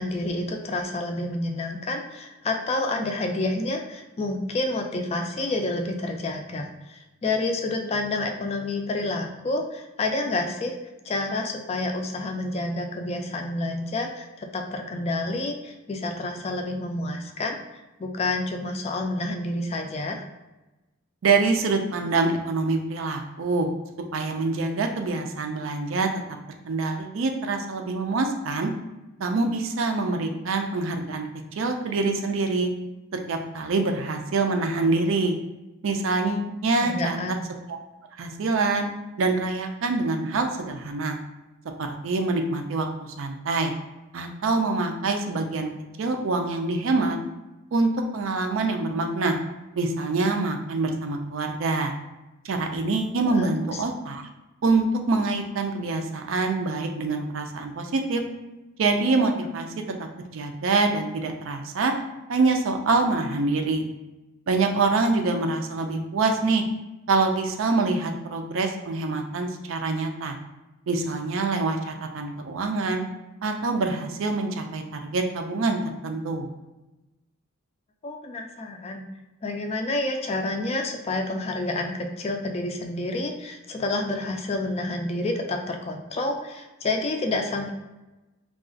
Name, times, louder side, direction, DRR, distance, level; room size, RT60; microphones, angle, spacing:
voice 1, 0.0-10.8 11.0-17.6 18.0-20.3 36.4-37.4 53.3-53.8 78.0-79.0 79.4-87.7, left 2 dB, 30° left, 4 dB, 0.3 m, -29 dB
voice 2, 21.2-23.7 24.1-26.1 26.7-28.7 29.2-32.7 33.3-35.4 35.8-37.2 37.7-37.8 38.2-38.9 39.2-41.2 42.0-43.7 44.1-45.7 46.0-47.2 47.7-49.4 49.8-51.9 52.4-54.3 54.6-58.2 58.8-59.7 60.3-61.9 62.3-63.9 64.5-66.6 67.1-70.4 70.9-73.0 73.4-76.5, right 3 dB, 70° right, 5 dB, 0.4 m, -25 dB
2.4 x 2.3 x 3.7 m, 1.1 s
head